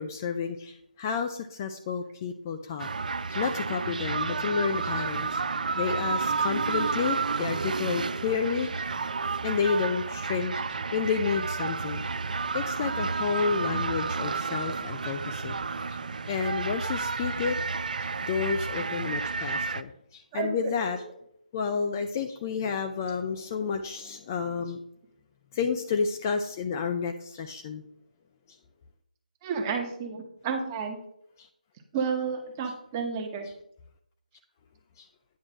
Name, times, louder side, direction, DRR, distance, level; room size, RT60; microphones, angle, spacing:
voice 1, 0.0-2.9 3.3-5.4 5.8-8.9 9.4-12.1 12.5-15.6 15.9-16.0 16.3-17.6 18.0-21.0 21.5-24.8 25.5-27.8 31.4-31.5 35.0-35.1, left 6 dB, 20° left, 6 dB, 0.4 m, -30 dB
sound 1, 2.8-19.8, right 4 dB, 65° right, 0.4 m, -31 dB
voice 2, 20.3-21.0 29.4-31.0 31.9-33.5, right 5 dB, 20° right, 3 dB, 1.0 m, -31 dB
9.1 x 3.1 x 6.2 m, 0.73 s
figure-of-eight pair, 160°, 5 cm